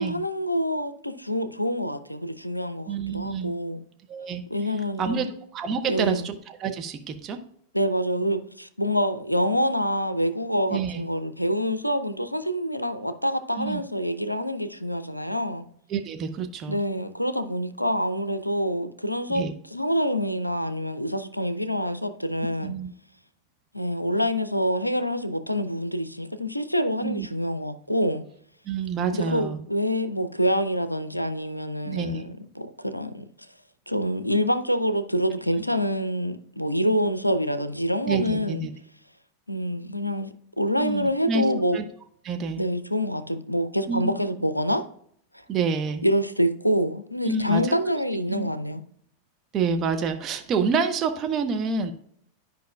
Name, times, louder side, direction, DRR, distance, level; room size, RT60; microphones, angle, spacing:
voice 1, 0.0-3.8 4.5-5.3 5.9-6.3 7.7-15.7 16.7-22.7 23.7-28.2 29.1-33.3 33.9-38.7 39.5-40.3 40.6-41.8 42.6-44.8 45.3-45.4 46.0-48.8, equal, 90° left, 0.5 m, -26 dB
voice 2, 2.9-3.5 4.1-4.4 5.0-5.3 5.5-7.4 10.7-11.0 13.6-13.8 15.9-16.8 19.3-19.5 22.6-22.9 27.0-27.3 28.6-29.6 31.8-32.3 38.0-38.7 40.8-41.4 41.7-41.8 42.2-42.6 43.9-44.2 45.5-46.1 47.2-47.8 48.3-48.5 49.5-51.9, right 5 dB, 30° right, 0.8 m, -28 dB
11.5 x 5.1 x 2.2 m
figure-of-eight pair, 90°, 0 cm